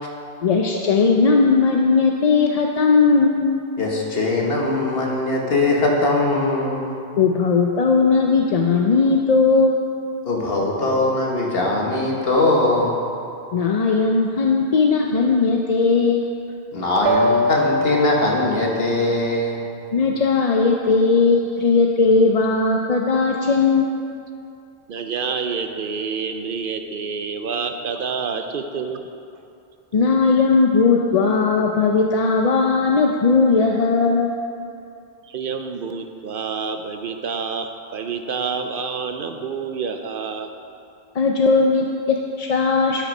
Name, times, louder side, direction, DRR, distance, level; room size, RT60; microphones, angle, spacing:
voice 1, 0.4-3.6 7.2-9.9 13.5-16.3 19.9-23.9 29.9-34.4 41.1-43.0, left 4 dB, 45° left, 1 dB, 0.6 m, -18 dB
voice 2, 3.8-7.0 10.2-13.0 16.7-19.6, left 2 dB, 65° left, -1 dB, 1.7 m, -21 dB
sound 1, 17.1-18.9, left 1 dB, 85° right, 1.1 m, -22 dB
voice 3, 24.9-29.1 35.3-40.5, right 5 dB, 60° right, 6 dB, 0.7 m, -28 dB
12.0 x 6.1 x 5.4 m, 2.6 s
omnidirectional pair, 1.1 m